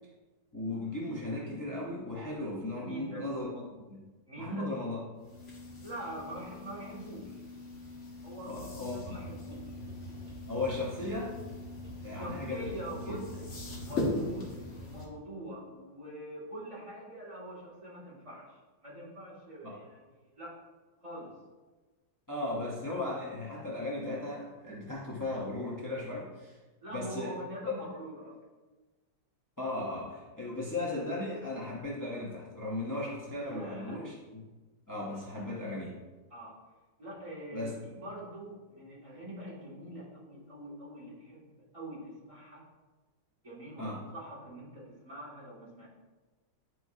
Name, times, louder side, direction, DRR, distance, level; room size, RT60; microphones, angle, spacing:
voice 1, 0.5-3.6 3.9-4.0 4.4-5.0 8.4-9.2 10.5-11.4 12.0-12.7 13.1-13.2 19.6-19.8 22.3-26.6 26.9-27.4 29.6-34.4 34.9-36.0 37.5-37.7 43.8-44.1, left 2 dB, 25° left, -5 dB, 0.4 m, -36 dB
voice 2, 2.8-3.2 4.3-4.7 5.8-7.4 8.2-9.7 12.1-13.4 13.8-20.6 21.0-21.3 26.8-28.4 33.4-34.0 36.3-36.6 37.0-42.6 43.4-45.9, right 1 dB, 20° right, -7 dB, 1.9 m, -44 dB
sound 1, 5.2-15.0, left 2 dB, 45° left, 1.5 m, -41 dB
sound 2, 8.5-14.1, right 1 dB, 45° right, 1.6 m, -47 dB
9.9 x 4.6 x 2.7 m, 1.2 s
omnidirectional pair, 1.9 m